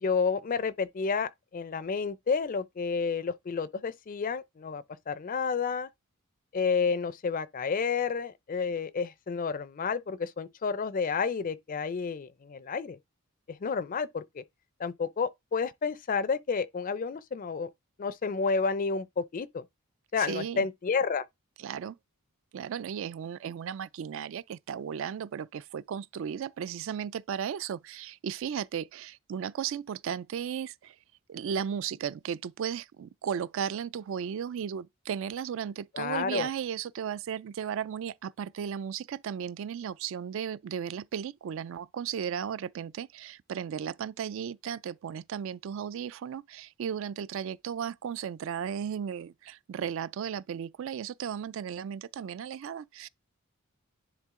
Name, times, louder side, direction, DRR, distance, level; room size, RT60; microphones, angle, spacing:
voice 1, 0.0-5.9 6.5-13.0 13.5-14.4 14.8-17.7 18.0-19.6 20.1-21.2 35.9-36.5, left 5 dB, 40° left, 0.4 m, -30 dB
voice 2, 20.2-20.7 21.6-22.0 22.5-31.0 31.3-53.1, right 8 dB, 65° right, 0.3 m, -35 dB
10.0 x 3.5 x 3.6 m
head